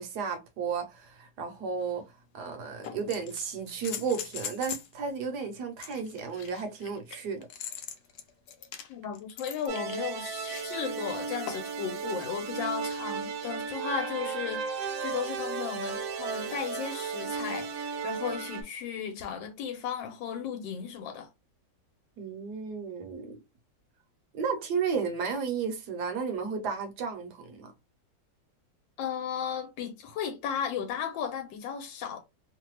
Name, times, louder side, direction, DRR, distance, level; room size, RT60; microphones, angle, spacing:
voice 1, 0.0-2.0 2.3-7.5 22.2-23.4 24.3-27.7, right 5 dB, 70° right, 1.2 m, -33 dB
sound 1, 1.8-1.9 2.8-4.9 5.8-10.8 11.5-11.8 13.5-13.6, left 8 dB, 70° left, 1.0 m, -41 dB
voice 2, 8.9-21.3 29.0-32.2, left 7 dB, 90° left, 1.4 m, -35 dB
sound 2, 9.7-18.6, right 5 dB, 85° right, 1.3 m, -35 dB
3.2 x 2.2 x 3.0 m
omnidirectional pair, 2.0 m